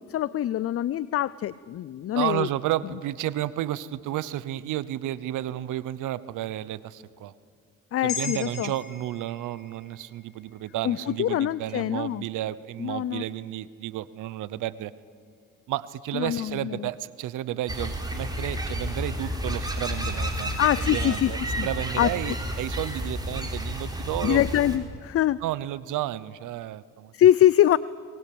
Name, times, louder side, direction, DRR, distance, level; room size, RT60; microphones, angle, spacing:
voice 1, 0.1-2.5 7.9-8.7 10.8-12.2 12.8-13.2 16.1-16.9 20.6-21.7 22.0-22.3 24.2-25.4 27.1-27.8, left 12 dB, 50° left, 19 dB, 0.5 m, -24 dB
voice 2, 2.1-7.3 8.0-14.9 15.7-20.6 20.9-24.4 25.4-27.1, right 13 dB, 85° right, 18 dB, 0.8 m, -32 dB
sound 1, 8.1-12.6 13.0-13.1, left 6 dB, 65° left, 4.8 m, -41 dB
sound 2, 17.7-24.8, equal, 15° right, 3.9 m, -31 dB
23.0 x 20.0 x 8.6 m, 2.1 s
cardioid pair, 90°, 30 cm